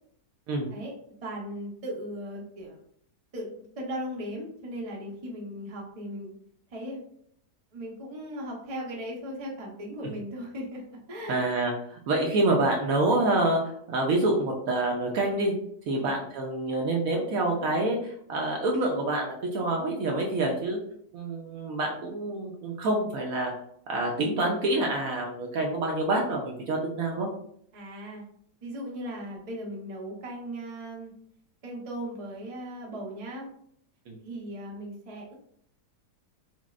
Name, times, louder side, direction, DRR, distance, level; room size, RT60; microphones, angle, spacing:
voice 1, 1.2-2.8 3.3-6.3 6.7-7.0 7.7-11.5 15.9-16.2 27.7-28.2 28.6-31.1 31.6-33.5 34.2-35.3, equal, 30° right, -2 dB, 0.6 m, -37 dB
voice 2, 11.3-13.6 13.9-15.5 15.9-20.8 21.1-23.5 23.9-27.3 34.1-34.2, right 2 dB, 65° right, 0 dB, 0.9 m, -27 dB
5.9 x 2.0 x 2.4 m, 0.67 s
omnidirectional pair, 1.8 m